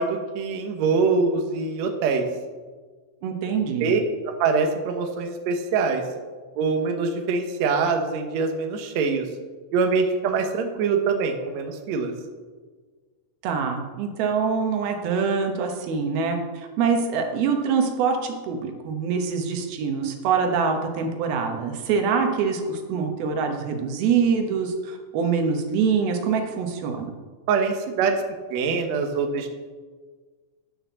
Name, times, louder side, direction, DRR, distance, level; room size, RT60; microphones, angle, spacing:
voice 1, 0.0-2.2 3.8-6.0 6.6-9.2 9.7-12.1 27.5-28.2 28.5-29.5, right 4 dB, 65° right, 4 dB, 1.9 m, -24 dB
voice 2, 3.2-3.9 13.4-27.1, right 5 dB, 85° right, 4 dB, 3.1 m, -24 dB
11.0 x 6.0 x 7.0 m, 1.4 s
omnidirectional pair, 4.2 m